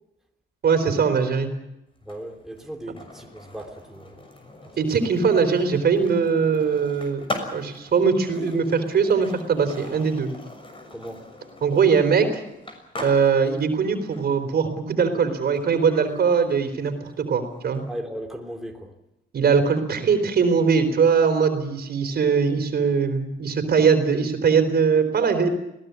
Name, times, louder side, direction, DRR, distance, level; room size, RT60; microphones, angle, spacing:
voice 1, 0.6-1.5 4.8-7.2 7.5-10.3 11.6-12.4 13.0-17.8 19.3-25.5, right 6 dB, 55° right, 7 dB, 4.0 m, -21 dB
Skateboard, 1.9-17.8, left 1 dB, 25° left, 6.3 m, -41 dB
voice 2, 2.0-4.1 10.9-11.2 17.9-18.9, equal, ahead, 2 dB, 3.0 m, -36 dB
21.0 x 17.5 x 9.5 m, 0.88 s
cardioid pair, 90°, 20 cm